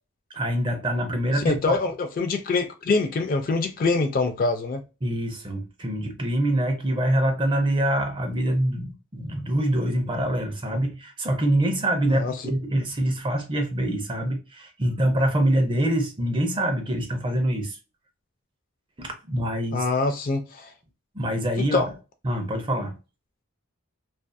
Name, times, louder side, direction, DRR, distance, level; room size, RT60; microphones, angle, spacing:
voice 1, 0.3-1.8 5.0-17.8 19.0-19.8 21.1-21.9 22.2-23.0, right 1 dB, 25° right, 0.5 m, -25 dB
voice 2, 1.3-4.8 12.1-12.5 19.7-20.7 21.6-21.9, left 3 dB, 40° left, 0.3 m, -25 dB
2.5 x 2.4 x 2.2 m
head